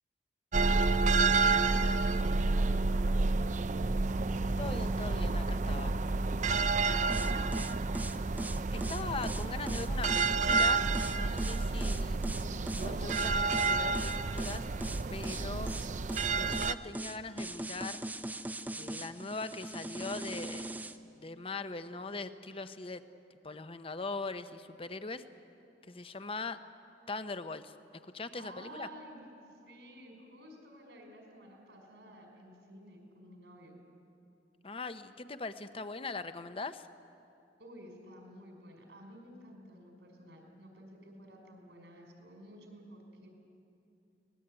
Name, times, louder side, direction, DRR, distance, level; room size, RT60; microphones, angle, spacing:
sound 1, 0.5-16.7, right 3 dB, 45° right, 0.5 m, -30 dB
voice 1, 4.6-6.0 8.7-10.8 11.1-12.2 12.8-14.7 15.1-15.7 16.3-18.0 18.8-20.7 21.2-23.0 23.4-25.2 25.9-26.6 27.1-27.7 28.0-28.9 34.6-36.9, left 3 dB, 35° left, 11 dB, 0.9 m, -41 dB
sound 2, 7.1-21.0, right 1 dB, 10° right, 0.7 m, -40 dB
voice 2, 7.1-7.6 28.3-29.2 29.5-33.8 37.6-43.3, right 1 dB, 85° right, 2 dB, 5.4 m, -52 dB
23.5 x 20.0 x 9.0 m, 2.7 s
head